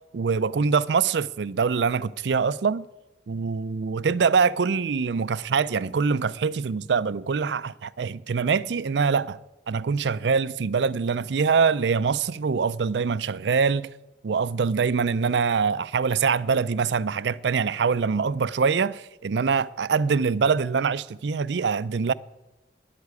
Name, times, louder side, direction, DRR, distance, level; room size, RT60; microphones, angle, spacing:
voice 1, 0.1-2.8 3.3-9.4 9.7-13.9 14.2-22.1, right 5 dB, 75° right, 0.5 m, -24 dB
10.5 x 8.3 x 9.6 m
head